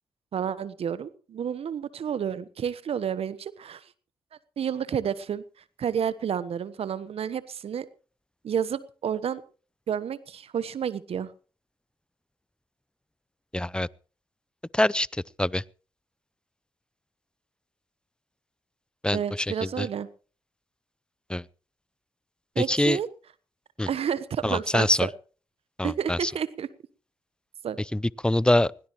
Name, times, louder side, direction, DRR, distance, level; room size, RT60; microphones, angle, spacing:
voice 1, 0.3-3.8 4.6-5.4 5.8-7.9 8.4-9.4 9.9-11.3 19.1-20.1 22.5-23.1 23.9-25.1 25.8-26.7 27.6-27.8, right 8 dB, 65° right, 1.1 m, -30 dB
voice 2, 13.5-13.9 14.7-15.1 15.4-15.6 19.0-19.2 19.6-19.9 21.3-21.4 22.7-23.0 23.8-23.9 24.4-25.1 25.8-26.3 27.9-28.7, left 1 dB, 10° left, 0.6 m, -24 dB
20.5 x 18.0 x 3.1 m
hypercardioid pair, 40°, 11 cm